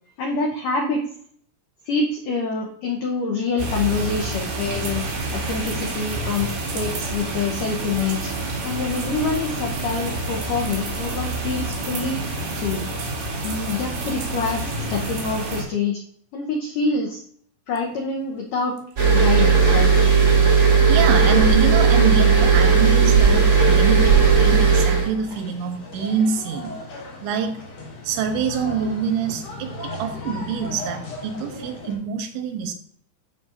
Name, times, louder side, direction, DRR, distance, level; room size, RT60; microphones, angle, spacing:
voice 1, 0.2-1.0 1.8-5.0 5.3-6.5 6.7-8.3 8.6-12.2 12.6-12.9 13.4-16.0 16.3-17.2 17.7-18.8 19.1-19.9, left 4 dB, 85° left, 0 dB, 1.8 m, -26 dB
sound 1, 3.6-15.6, right 2 dB, 65° right, 4.1 m, -28 dB
sound 2, 19.0-25.0, right 5 dB, 30° right, 2.1 m, -15 dB
voice 2, 20.5-26.8 27.2-27.6 28.0-32.7, right 6 dB, 90° right, 6 dB, 3.2 m, -26 dB
sound 3, 24.6-32.0, left 2 dB, 45° left, 2.7 m, -36 dB
11.5 x 5.6 x 2.5 m, 0.62 s
omnidirectional pair, 5.2 m